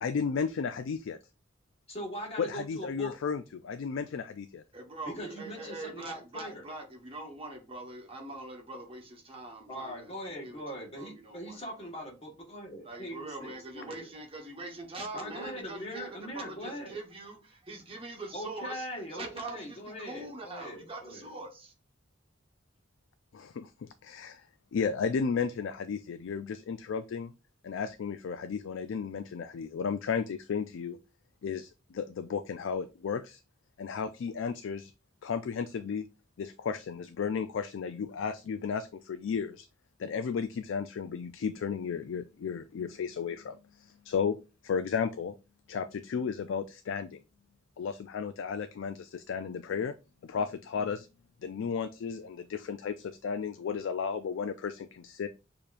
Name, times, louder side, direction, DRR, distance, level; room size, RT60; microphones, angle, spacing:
voice 1, 0.0-1.2 2.4-4.6 23.3-24.4 24.7-27.3 27.6-31.0 31.4-33.4 33.8-34.9 35.2-36.0 36.4-39.7 40.0-44.4 44.6-45.3 45.7-47.2 47.8-49.9 50.2-51.1 51.4-55.3, left 6 dB, 75° left, 0.3 m, -34 dB
voice 2, 1.9-3.2 5.0-6.6 9.7-14.1 15.1-17.0 18.3-21.3, equal, 30° left, 1.6 m, -41 dB
voice 3, 4.7-10.1 10.4-11.6 12.8-18.9 19.1-21.7, right 2 dB, 30° right, 1.2 m, -43 dB
6.6 x 2.9 x 2.5 m
head